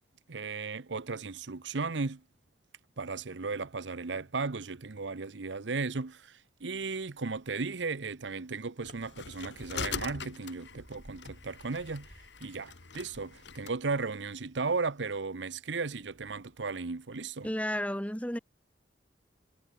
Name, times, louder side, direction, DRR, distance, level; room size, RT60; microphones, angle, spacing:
voice 1, 0.3-2.2 3.0-17.5, right 4 dB, 90° right, 0.9 m, -35 dB
sound 1, 6.8-15.3, equal, 40° right, 5.4 m, -61 dB
sound 2, 8.8-13.8, left 5 dB, 80° left, 1.8 m, -42 dB
voice 2, 17.4-18.4, equal, 10° left, 3.0 m, -32 dB
head